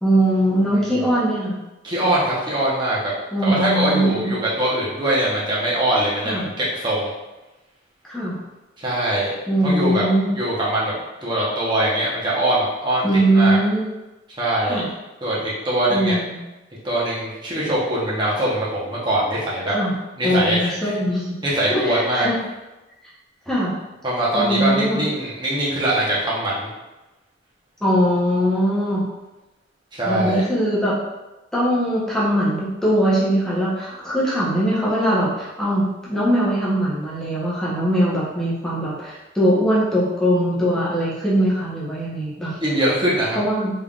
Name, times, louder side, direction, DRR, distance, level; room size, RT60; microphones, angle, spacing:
voice 1, 0.0-1.5 3.3-4.3 6.2-6.5 8.1-8.4 9.5-10.3 13.0-13.9 14.7-14.9 15.9-16.4 19.7-19.9 20.2-21.3 21.7-22.4 23.5-23.7 24.3-25.0 27.8-29.1 30.0-31.0 31.5-42.5 43.3-43.7, equal, 5° left, -8 dB, 0.9 m, -21 dB
voice 2, 1.8-3.1 3.4-7.1 8.8-9.3 9.6-10.0 10.4-10.9 11.2-13.1 13.3-13.6 14.4-14.8 15.2-16.2 16.8-19.7 20.2-21.0 21.4-22.3 24.0-26.7 29.9-30.4 42.6-43.4, right 1 dB, 25° right, -7 dB, 0.9 m, -22 dB
3.6 x 3.5 x 2.4 m, 1.0 s
head